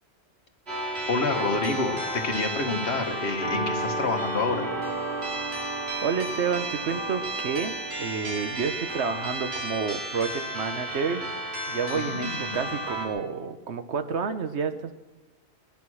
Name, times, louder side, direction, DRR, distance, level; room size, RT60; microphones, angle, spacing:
sound 1, 0.7-13.1, right 1 dB, 70° right, 3.9 m, -32 dB
voice 1, 1.1-4.7 11.9-12.7, left 3 dB, 80° left, 5 dB, 1.8 m, -28 dB
voice 2, 6.0-11.3 11.7-14.9, right 5 dB, 90° right, 9 dB, 1.3 m, -30 dB
20.5 x 10.5 x 6.3 m, 1.2 s
omnidirectional pair, 1.1 m